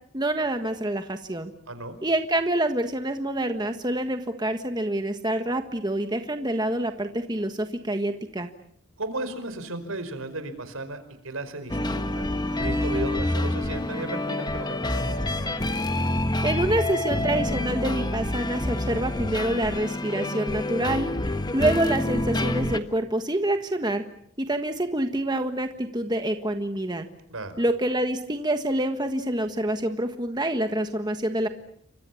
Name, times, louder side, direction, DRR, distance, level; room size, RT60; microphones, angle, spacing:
voice 1, 0.1-1.5 2.0-8.5 16.4-21.1 21.5-24.0 24.4-27.1 27.6-31.5, right 1 dB, 20° right, 6 dB, 1.5 m, -27 dB
voice 2, 9.0-12.3 12.5-15.2 27.3-27.5, right 2 dB, 80° right, 10 dB, 5.0 m, -35 dB
sound 1, 11.7-22.8, left 1 dB, 20° left, 1.3 m, -27 dB
29.5 x 26.0 x 7.2 m, 0.68 s
head